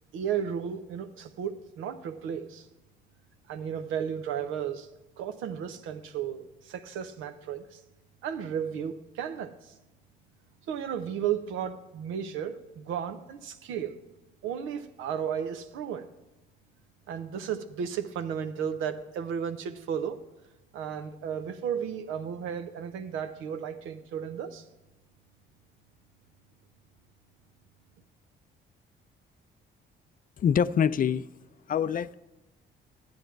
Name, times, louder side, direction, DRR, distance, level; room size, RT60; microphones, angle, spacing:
voice 1, 0.1-2.7 3.5-4.9 5.2-7.8 8.2-9.7 10.7-14.0 14.4-16.1 17.1-20.2 20.7-24.6, right 8 dB, 90° right, 0.8 m, -34 dB
voice 2, 30.4-31.3 31.7-32.1, left 8 dB, 45° left, 0.4 m, -25 dB
12.5 x 8.8 x 4.6 m
cardioid pair, 90°, 20 cm